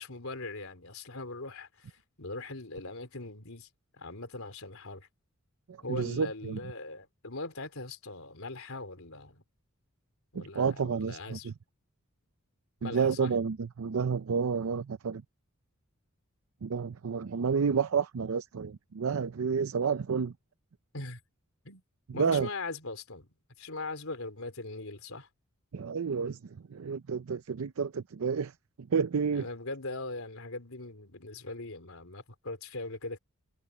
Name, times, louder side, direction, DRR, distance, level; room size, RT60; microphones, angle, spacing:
voice 1, 0.0-5.1 5.8-9.4 10.3-11.5 12.8-13.3 20.9-21.2 21.6-21.8 22.1-23.3 23.6-25.3 29.3-33.2, left 2 dB, 80° left, 3.7 m, -40 dB
voice 2, 5.7-6.6 10.3-11.5 12.8-15.2 16.6-20.3 22.2-22.5 25.7-29.5, right 6 dB, 85° right, 0.5 m, -30 dB
head